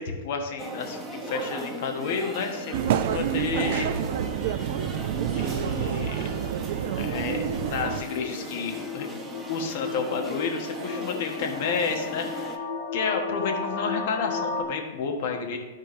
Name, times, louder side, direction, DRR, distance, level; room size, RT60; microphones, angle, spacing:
voice 1, 0.0-3.9 5.3-6.2 7.0-9.1 9.5-12.6 12.9-15.6, left 5 dB, 60° left, 3 dB, 1.2 m, -30 dB
sound 1, 0.6-12.6, right 1 dB, 10° right, 0.9 m, -38 dB
sound 2, 2.7-8.0, right 10 dB, 60° right, 0.4 m, -28 dB
sound 3, 2.9-14.6, left 4 dB, 80° left, 1.4 m, -36 dB
12.5 x 4.4 x 3.2 m, 1.3 s
hypercardioid pair, 120°, 0 cm